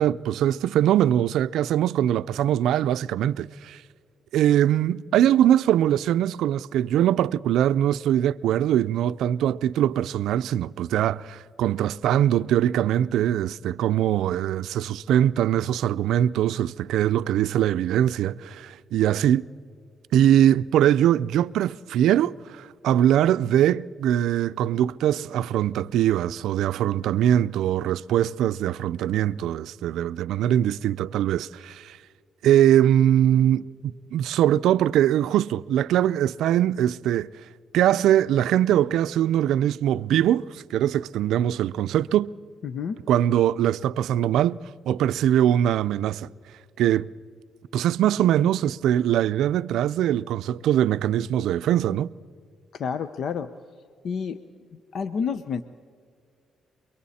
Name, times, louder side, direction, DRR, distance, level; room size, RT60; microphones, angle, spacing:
voice 1, 0.0-3.8 4.3-19.5 20.1-32.0 32.4-37.3 37.7-42.3 43.1-44.6 44.9-46.3 46.8-47.1 47.7-52.1, right 11 dB, 80° right, 0.4 m, -22 dB
voice 2, 42.6-43.0 52.7-53.5 54.0-54.4 54.9-55.6, left 6 dB, 60° left, 0.8 m, -29 dB
29.5 x 23.5 x 4.2 m
cardioid pair, 90°, 0 cm